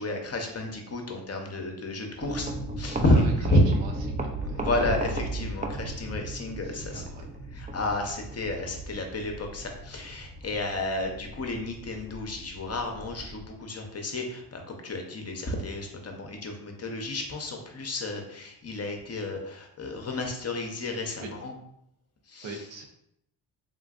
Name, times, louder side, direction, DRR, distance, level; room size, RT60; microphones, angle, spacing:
voice 1, 0.0-3.6 4.5-7.0 7.5-21.5 22.3-22.6, left 1 dB, 35° left, 3 dB, 0.7 m, -30 dB
sound 1, 2.2-13.5, right 2 dB, 20° right, 0.4 m, -36 dB
voice 2, 3.1-4.6 6.6-7.3 21.2-21.3 22.4-22.8, right 3 dB, 80° right, 2 dB, 0.8 m, -41 dB
3.8 x 2.5 x 2.4 m, 0.76 s
cardioid pair, 75°, 44 cm